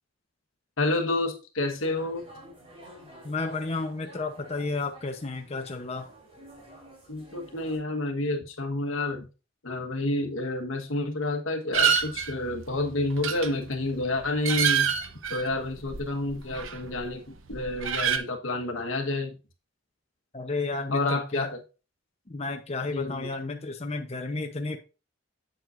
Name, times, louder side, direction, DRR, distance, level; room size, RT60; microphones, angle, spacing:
voice 1, 0.8-2.2 7.1-9.3 9.6-14.9 15.3-19.3 20.9-21.6 22.8-23.3, left 2 dB, 80° left, 5 dB, 1.3 m, -29 dB
sound 1, 1.8-7.8, right 1 dB, 30° right, 3.9 m, -50 dB
voice 2, 3.2-6.1 20.3-21.5 22.3-24.8, left 3 dB, 30° left, 4 dB, 0.7 m, -32 dB
sound 2, 11.7-17.1 17.4-18.2, right 7 dB, 75° right, 0.9 m, -28 dB
7.8 x 7.7 x 2.5 m, 0.31 s
head